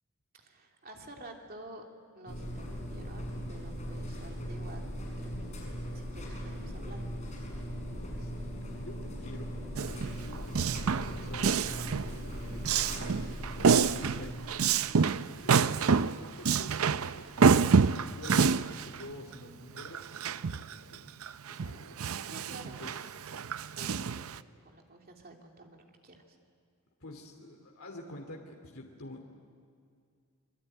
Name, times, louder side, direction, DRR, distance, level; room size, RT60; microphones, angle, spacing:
voice 1, 0.3-1.9 2.1-4.8 5.2-7.1 22.2-22.9 23.7-24.2 24.6-26.4, right 2 dB, 40° right, 1 dB, 3.0 m, -50 dB
sound 1, 2.3-19.0, equal, 30° left, 7.0 m, -40 dB
voice 2, 8.2-13.1 13.6-17.5 17.9-21.1 21.5-22.2 22.6-23.1 27.0-29.3, left 1 dB, 75° left, 2 dB, 2.7 m, -49 dB
Male speech man speaking, 9.8-12.2 12.6-20.7 21.2-24.4, right 5 dB, 75° right, 0.6 m, -27 dB
26.5 x 22.5 x 9.2 m, 2.3 s
head